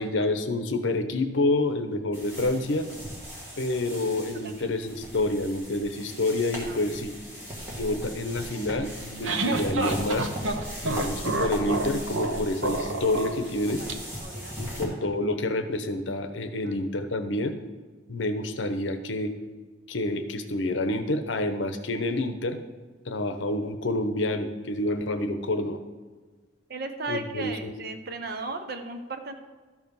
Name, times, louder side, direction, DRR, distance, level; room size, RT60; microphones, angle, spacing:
voice 1, 0.0-2.9 3.6-7.2 7.7-10.3 10.8-13.8 14.6-17.5 18.1-19.3 19.9-22.6 23.1-25.8 27.1-27.7, left 2 dB, 75° left, 9 dB, 0.8 m, -28 dB
sound 1, 2.1-14.9, equal, 10° right, 2.1 m, -38 dB
sound 2, 8.8-13.9, right 2 dB, 85° right, 0.8 m, -29 dB
voice 2, 14.2-15.1 26.7-29.3, right 3 dB, 55° right, 6 dB, 0.8 m, -36 dB
12.5 x 4.8 x 5.5 m, 1.4 s
head